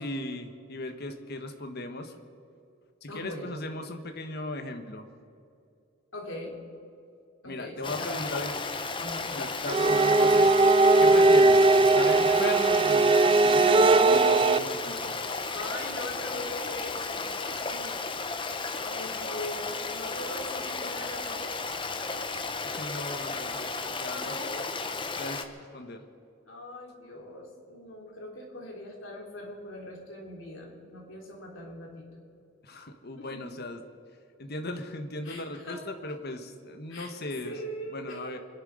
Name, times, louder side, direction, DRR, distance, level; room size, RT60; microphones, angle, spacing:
voice 1, 0.0-2.1 3.0-5.1 7.4-8.5 9.3-10.5 11.0-15.1 22.6-24.3 25.2-26.0 32.6-33.8 34.4-37.5 37.9-38.4, left 2 dB, 50° left, 7 dB, 1.4 m, -37 dB
voice 2, 3.1-3.6 6.1-6.6 7.4-8.6 9.0-9.3 15.5-22.1 23.5-24.7 26.5-32.2 33.2-33.5 35.2-35.8 36.9-37.1 37.4-38.4, left 1 dB, 70° left, 0 dB, 3.3 m, -41 dB
Stream, 7.8-25.5, left 4 dB, 25° left, 0.9 m, -34 dB
sound 1, 9.7-14.6, right 3 dB, 25° right, 0.4 m, -19 dB
25.5 x 11.0 x 5.1 m, 2.5 s
head